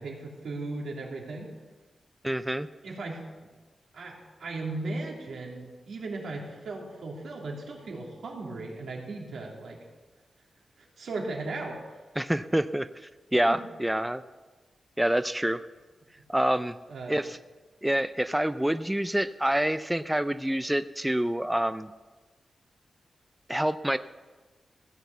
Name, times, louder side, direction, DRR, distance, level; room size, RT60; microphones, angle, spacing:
voice 1, 0.0-1.5 2.8-3.2 3.9-9.8 10.8-12.0 13.5-13.6 16.9-17.2, right 2 dB, 85° right, -1 dB, 3.1 m, -37 dB
voice 2, 2.2-2.7 12.2-12.9 13.3-14.2 15.0-15.6 16.3-16.7 17.1-17.4 17.8-21.9 23.5-24.0, right 1 dB, 5° right, 12 dB, 0.3 m, -27 dB
16.0 x 8.2 x 6.8 m, 1.3 s
wide cardioid pair, 140°, 0 cm